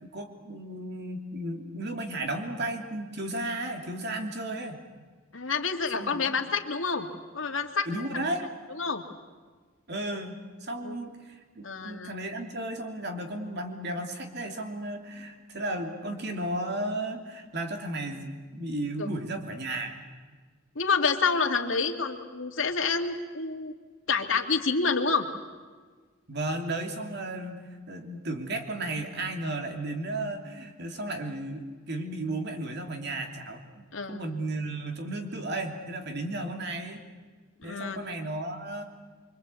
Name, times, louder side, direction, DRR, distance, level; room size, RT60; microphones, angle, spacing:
voice 1, 0.0-4.8 5.9-6.2 7.8-8.5 9.9-20.1 26.3-27.6 27.9-37.0 37.6-38.8, right 1 dB, 55° right, 4 dB, 2.9 m, -34 dB
voice 2, 5.3-7.1 7.3-7.9 8.8-9.0 10.8-11.0 11.6-12.2 19.0-19.1 20.8-23.7 24.1-25.3 33.9-34.2 37.6-38.0, left 5 dB, 80° left, 4 dB, 2.3 m, -28 dB
25.0 x 24.5 x 8.4 m, 1.4 s
head